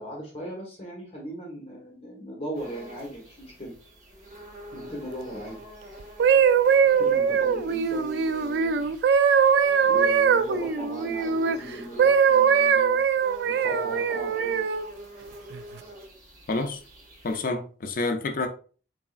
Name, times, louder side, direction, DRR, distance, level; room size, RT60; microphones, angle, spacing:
voice 1, 0.0-3.7 4.7-5.6 7.0-8.9 9.8-13.0 13.4-14.7, equal, 30° left, 1.2 m, -38 dB
sound 1, 2.5-17.4, equal, 45° right, 1.3 m, -46 dB
sound 2, 6.0-11.6 12.0-14.9 15.5-15.8, right 6 dB, 65° right, 0.3 m, -21 dB
voice 2, 16.5-16.8 17.2-18.5, left 2 dB, 50° left, 0.5 m, -28 dB
4.0 x 3.5 x 2.4 m
head